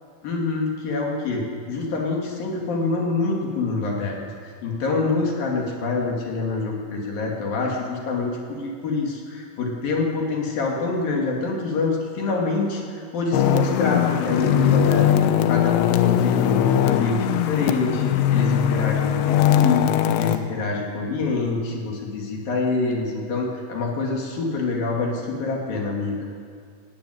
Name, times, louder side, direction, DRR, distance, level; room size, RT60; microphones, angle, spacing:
voice 1, 0.2-4.2 4.6-26.2, left 3 dB, 60° left, -1 dB, 4.0 m, -26 dB
sound 1, 13.3-20.4, left 10 dB, 85° left, 3.2 m, -20 dB
17.5 x 16.5 x 9.4 m, 2.2 s
omnidirectional pair, 5.0 m